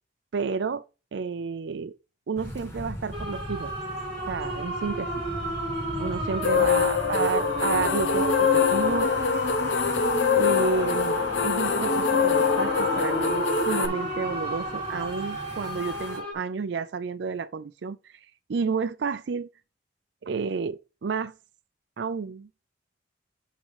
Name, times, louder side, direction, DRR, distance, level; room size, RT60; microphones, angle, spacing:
voice 1, 0.3-0.8 1.1-2.0 2.3-3.7 4.3-5.1 6.0-9.1 10.3-18.1 18.5-19.5 20.2-21.3 22.0-22.5, right 5 dB, 60° right, 0.4 m, -30 dB
sound 1, 2.4-16.2, equal, 15° left, 1.8 m, -41 dB
sound 2, 3.1-16.3, equal, 25° right, 2.3 m, -32 dB
sound 3, 6.4-13.9, left 6 dB, 70° left, 0.8 m, -24 dB
10.0 x 3.7 x 4.9 m
head